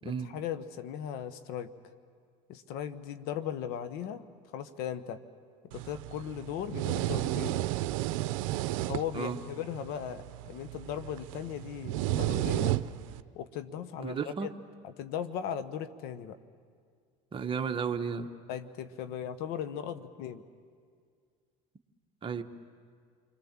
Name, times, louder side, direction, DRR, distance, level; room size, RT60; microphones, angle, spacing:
voice 1, 0.0-1.7 2.5-4.2 4.5-5.2 5.6-7.6 8.9-12.8 13.3-14.5 14.8-16.4 18.5-20.5, left 9 dB, 70° left, 11 dB, 1.1 m, -38 dB
sound 1, 5.7-13.2, right 15 dB, 85° right, 0.6 m, -33 dB
voice 2, 14.0-14.5 17.3-18.3 22.2-22.4, right 6 dB, 30° right, 6 dB, 1.2 m, -33 dB
28.5 x 22.0 x 7.4 m, 2.1 s
supercardioid pair, 100°, 17 cm